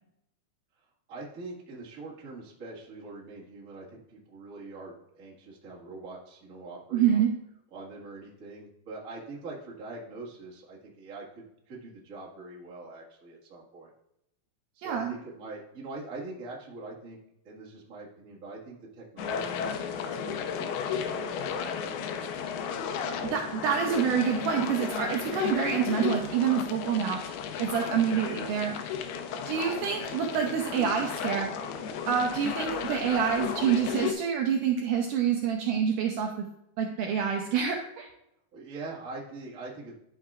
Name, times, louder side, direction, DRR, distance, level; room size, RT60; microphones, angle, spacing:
voice 1, 1.1-7.2 7.7-13.9 14.7-17.2 17.4-20.8 21.0-22.1 23.9-24.1 28.5-28.7 38.5-39.9, right 3 dB, 40° right, -4 dB, 1.2 m, -43 dB
voice 2, 6.9-7.3 14.8-15.2 23.2-27.2 27.6-28.7 29.5-31.5 32.1-36.3 36.8-38.1, right 7 dB, 80° right, 2 dB, 2.0 m, -27 dB
sound 1, 19.2-34.1, left 7 dB, 85° left, 2.7 m, -34 dB
12.0 x 5.8 x 2.4 m, 0.83 s
omnidirectional pair, 4.5 m